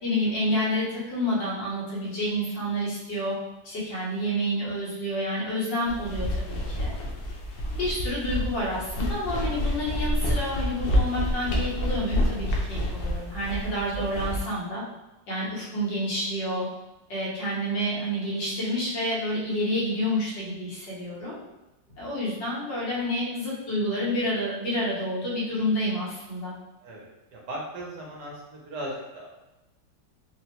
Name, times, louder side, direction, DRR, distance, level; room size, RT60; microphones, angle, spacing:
voice 1, 0.0-3.4 3.6-6.9 7.7-14.8 15.3-16.7 17.1-21.4 22.0-26.6, equal, 70° left, -7 dB, 1.6 m, -29 dB
sound 1, 5.9-14.4, equal, 85° left, 0.7 m, -28 dB
voice 2, 26.8-29.3, right 1 dB, 70° right, -3 dB, 1.2 m, -38 dB
3.6 x 2.1 x 2.8 m, 1.0 s
omnidirectional pair, 2.1 m